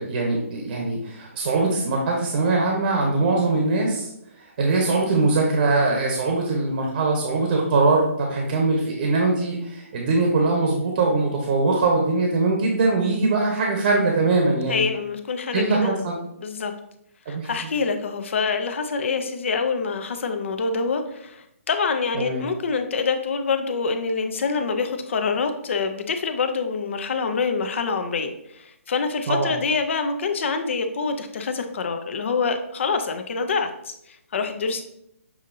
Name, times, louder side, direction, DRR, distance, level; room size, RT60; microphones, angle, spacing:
voice 1, 0.0-4.1 4.6-14.8 15.5-16.1 17.3-17.5 22.1-22.4 29.3-29.5, right 3 dB, 45° right, 0 dB, 0.9 m, -22 dB
voice 2, 14.7-16.0 16.4-16.7 17.3-34.8, left 4 dB, 55° left, 7 dB, 0.6 m, -26 dB
7.0 x 2.6 x 2.6 m, 0.78 s
hypercardioid pair, 145°, 8 cm